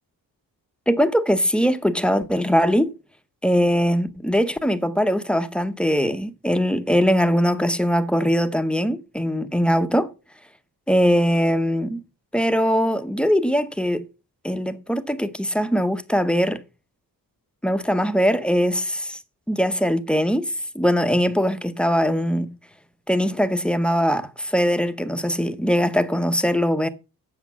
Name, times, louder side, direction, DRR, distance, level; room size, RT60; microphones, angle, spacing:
voice 1, 0.9-2.9 3.4-10.1 10.9-12.0 12.3-14.0 14.4-16.6 17.6-19.2 19.5-22.5 23.1-26.9, equal, 5° left, 0.8 m, -21 dB
8.3 x 6.6 x 5.8 m
wide cardioid pair, 120°, 36 cm